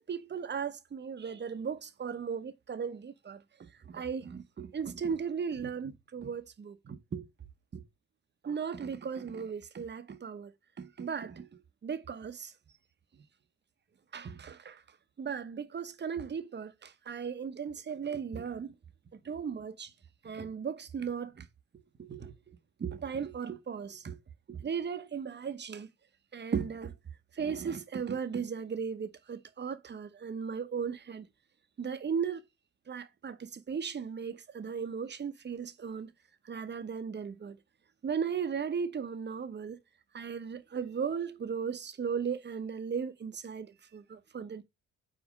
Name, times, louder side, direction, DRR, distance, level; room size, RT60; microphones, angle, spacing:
voice 1, 0.0-3.4 3.9-7.2 7.7-7.8 8.4-11.5 11.8-12.5 14.1-14.8 15.2-18.7 19.2-19.9 20.2-21.4 22.0-22.3 22.8-24.2 24.5-25.9 26.3-26.9 27.4-31.3 31.8-32.4 32.9-36.1 36.5-37.6 38.0-39.8 40.1-44.6, right 6 dB, 35° right, 1.0 m, -36 dB
5.1 x 4.3 x 5.2 m
cardioid pair, 90°, 30 cm